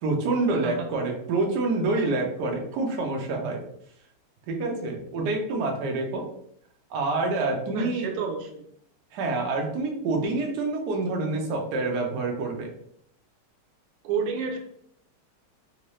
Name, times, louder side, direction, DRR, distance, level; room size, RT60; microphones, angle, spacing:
voice 1, 0.0-3.6 4.5-6.3 6.9-8.1 9.1-12.7, right 3 dB, 65° right, 1 dB, 1.1 m, -27 dB
voice 2, 7.7-8.7 14.0-14.6, right 6 dB, 90° right, 3 dB, 1.5 m, -30 dB
3.7 x 2.7 x 3.1 m, 0.69 s
omnidirectional pair, 2.3 m